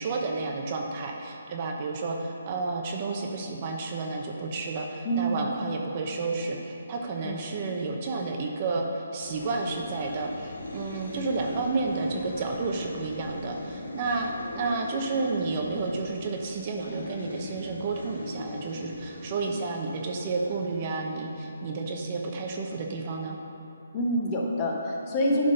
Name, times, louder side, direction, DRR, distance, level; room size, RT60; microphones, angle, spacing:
voice 1, 0.0-14.3 14.5-23.4, right 3 dB, 35° right, 1 dB, 0.8 m, -31 dB
voice 2, 5.0-5.5 7.2-7.7 23.9-25.5, equal, 25° left, -1 dB, 1.0 m, -27 dB
sound 1, 9.2-22.1, left 1 dB, 90° left, 1.6 m, -40 dB
11.0 x 3.8 x 5.4 m, 2.9 s
hypercardioid pair, 160°, 0 cm